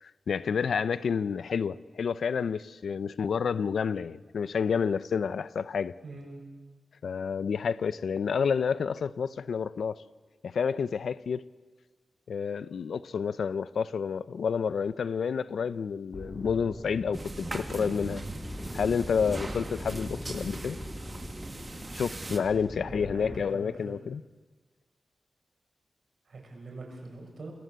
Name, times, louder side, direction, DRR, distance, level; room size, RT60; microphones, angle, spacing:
voice 1, 0.0-5.9 7.0-10.0 10.4-11.4 12.3-18.2 18.7-20.8 21.9-24.2, left 6 dB, 90° left, 0.7 m, -29 dB
voice 2, 6.0-6.4 22.5-23.7 26.3-27.5, right 2 dB, 60° right, 7.5 m, -44 dB
sound 1, 16.1-23.4, left 1 dB, 20° left, 4.0 m, -41 dB
sound 2, 17.1-22.4, right 2 dB, 25° right, 1.9 m, -40 dB
29.0 x 21.0 x 8.1 m
wide cardioid pair, 120°, 0 cm